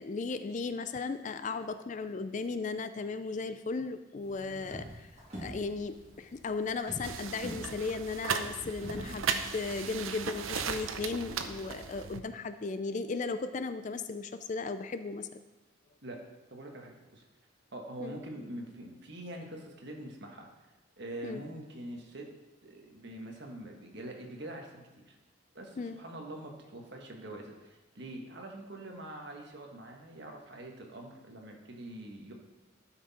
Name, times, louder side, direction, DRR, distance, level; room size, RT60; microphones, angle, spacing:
voice 1, 0.0-5.1 5.4-15.3 18.0-18.2 21.2-21.4 25.8-26.0, left 4 dB, 35° left, 10 dB, 0.4 m, -36 dB
sound 1, 4.2-9.3, right 1 dB, 30° right, 2.8 m, -45 dB
sound 2, 7.0-12.2, right 6 dB, 80° right, 0.6 m, -36 dB
voice 2, 16.5-17.2 17.7-20.5 21.0-22.3 22.6-25.2 25.5-32.3, right 1 dB, 55° right, 1 dB, 1.5 m, -44 dB
12.5 x 6.0 x 4.3 m, 1.1 s
head